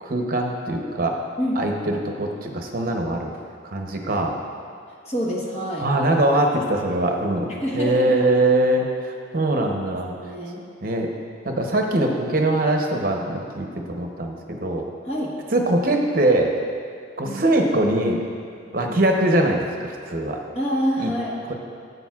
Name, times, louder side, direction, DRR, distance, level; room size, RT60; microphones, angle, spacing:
voice 1, 0.0-1.2 1.6-3.3 3.6-4.4 5.8-7.5 7.7-10.1 10.8-11.1 11.4-14.8 15.5-16.5 17.2-18.2 18.7-20.4 21.0-21.1 21.5-21.6, right 1 dB, 50° right, 2 dB, 0.8 m, -22 dB
voice 2, 5.1-5.9 7.6-8.2 10.2-10.6 15.0-15.3 17.2-17.4 18.9-19.0 20.5-21.4, equal, 35° left, -3 dB, 1.1 m, -26 dB
12.0 x 8.0 x 2.4 m, 2.2 s
head